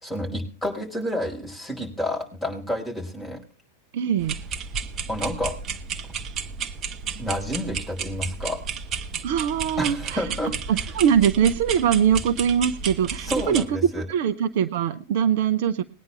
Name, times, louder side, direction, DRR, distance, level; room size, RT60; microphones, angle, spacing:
voice 1, 0.0-3.4 5.1-5.5 7.1-8.6 9.8-10.8 13.2-14.0, left 1 dB, 10° left, 2 dB, 4.7 m, -30 dB
voice 2, 3.9-4.4 9.2-10.2 10.7-15.8, right 8 dB, 50° right, 11 dB, 0.7 m, -22 dB
sound 1, 4.2-13.6, right 6 dB, 30° right, 1.1 m, -32 dB
20.5 x 9.6 x 3.3 m, 0.39 s
figure-of-eight pair, 90°, 0 cm